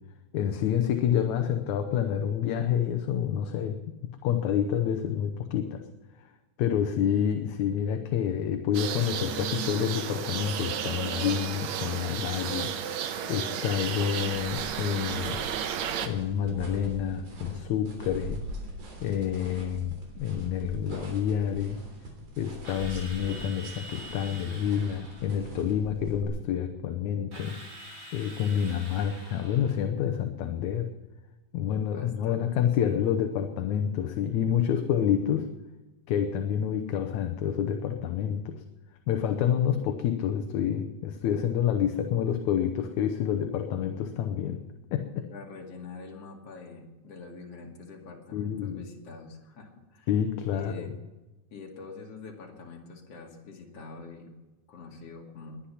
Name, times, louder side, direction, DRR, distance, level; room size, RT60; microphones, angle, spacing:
voice 1, 0.3-3.9 4.2-5.8 6.2-6.3 6.6-12.7 13.0-15.4 16.0-18.4 19.0-21.8 22.4-27.6 28.1-30.9 31.5-35.5 36.1-38.6 39.1-44.6 44.9-45.3 48.3-48.8 50.1-50.9, left 9 dB, 75° left, 6 dB, 2.2 m, -28 dB
sound 1, 8.7-16.1, right 8 dB, 70° right, 2.2 m, -33 dB
sound 2, 14.2-26.2, right 1 dB, 85° right, 4.8 m, -42 dB
Drill, 22.6-25.3 27.3-29.8, right 2 dB, 35° right, 6.5 m, -45 dB
voice 2, 31.9-33.0 45.3-50.1 50.5-50.9 51.5-54.3 54.7-55.6, left 4 dB, 55° left, 1 dB, 3.2 m, -45 dB
21.0 x 10.0 x 5.8 m, 1.1 s
omnidirectional pair, 3.5 m